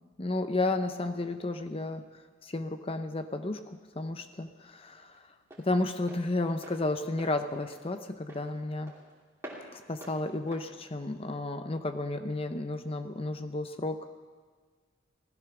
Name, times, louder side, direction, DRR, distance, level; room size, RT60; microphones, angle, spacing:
voice 1, 0.2-2.0 2.4-5.2 5.6-8.9 9.7-14.1, left 2 dB, 30° left, 8 dB, 0.7 m, -32 dB
Walk footsteps, 3.2-11.9, right 1 dB, 15° right, 2.9 m, -51 dB
16.5 x 14.0 x 6.0 m, 1.5 s
head